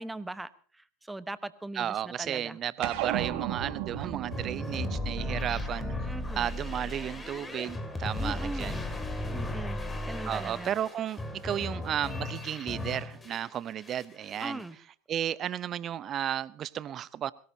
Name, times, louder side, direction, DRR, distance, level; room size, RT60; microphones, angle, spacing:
voice 1, 0.0-2.6 3.2-3.4 6.1-6.5 8.2-8.7 9.3-10.7 14.4-14.8, right 2 dB, 10° right, 14 dB, 1.0 m, -40 dB
voice 2, 1.8-6.1 6.4-8.8 10.3-14.6 15.1-17.3, right 10 dB, 40° right, 19 dB, 0.7 m, -33 dB
sound 1, 2.8-7.6, right 11 dB, 60° right, 1.8 m, -37 dB
sound 2, 4.3-13.5 13.8-14.6, left 2 dB, 15° left, 2.5 m, -36 dB
22.5 x 17.5 x 2.8 m, 0.42 s
hypercardioid pair, 85°, 0 cm